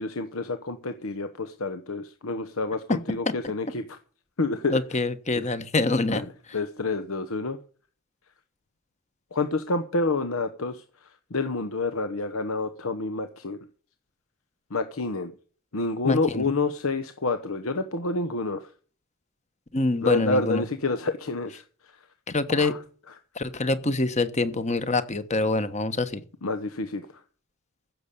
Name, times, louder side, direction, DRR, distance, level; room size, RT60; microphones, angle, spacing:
voice 1, 0.0-4.0 4.4-4.8 5.4-5.6 6.1-6.3 6.5-7.6 9.3-10.8 11.3-13.6 14.7-15.3 15.7-18.7 20.0-21.6 22.5-22.8 26.4-27.0, left 3 dB, 85° left, 1.0 m, -28 dB
voice 2, 4.7-6.2 16.0-16.4 19.7-20.6 22.3-22.7 23.4-26.2, left 2 dB, 35° left, 1.2 m, -25 dB
15.5 x 7.1 x 6.7 m
head